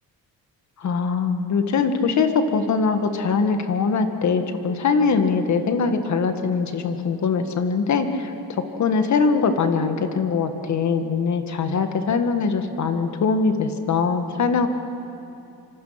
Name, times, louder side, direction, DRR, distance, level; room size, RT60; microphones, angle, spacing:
voice 1, 0.8-14.7, left 5 dB, 50° left, 7 dB, 1.8 m, -22 dB
26.5 x 25.5 x 5.9 m, 2.8 s
cardioid pair, 135°, 37 cm